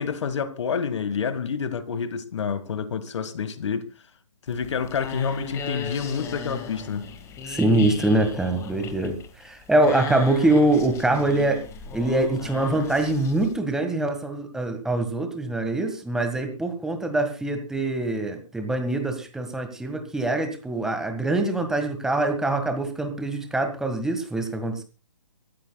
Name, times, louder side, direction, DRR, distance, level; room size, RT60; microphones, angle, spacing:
voice 1, 0.0-3.9 4.5-7.0, left 6 dB, 55° left, 1.8 m, -28 dB
sound 1, 4.5-13.6, left 5 dB, 15° left, 1.8 m, -38 dB
voice 2, 7.5-11.6 11.9-24.8, right 2 dB, 5° right, 1.7 m, -24 dB
25.0 x 13.5 x 2.3 m
figure-of-eight pair, 135°, 18 cm